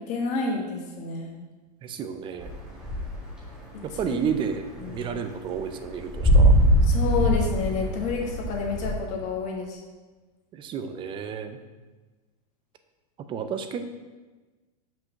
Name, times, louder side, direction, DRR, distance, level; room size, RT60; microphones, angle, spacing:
voice 1, 0.1-1.3 3.9-4.2 4.8-5.2 6.9-9.8, left 4 dB, 40° left, 0 dB, 1.7 m, -29 dB
voice 2, 1.8-2.5 3.8-6.5 10.5-11.6 13.3-13.9, right 7 dB, 25° right, 8 dB, 0.6 m, -31 dB
sound 1, 2.4-3.4 3.7-8.9, equal, 5° right, 1.8 m, -22 dB
6.0 x 5.1 x 6.7 m, 1.3 s
supercardioid pair, 150°, 20 cm